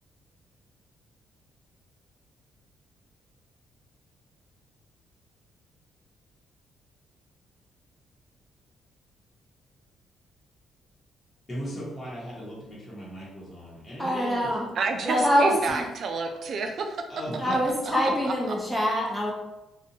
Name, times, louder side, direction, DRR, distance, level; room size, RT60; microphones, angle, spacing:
voice 1, 11.5-14.5 17.1-17.6, equal, 25° left, -7 dB, 1.0 m, -37 dB
voice 2, 14.0-14.7 15.0-15.9 17.4-19.3, equal, 5° left, -3 dB, 0.8 m, -24 dB
voice 3, 14.8-17.0, right 4 dB, 60° right, 5 dB, 0.4 m, -29 dB
2.5 x 2.2 x 2.8 m, 0.97 s
cardioid pair, 90°, 0 cm